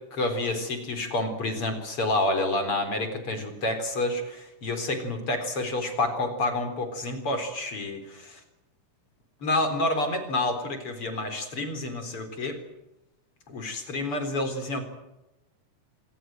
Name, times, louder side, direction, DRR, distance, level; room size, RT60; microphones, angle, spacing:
voice 1, 0.1-8.4 9.4-12.6 13.5-14.8, left 2 dB, 45° left, 8 dB, 4.8 m, -29 dB
27.0 x 20.5 x 7.8 m, 0.98 s
omnidirectional pair, 3.5 m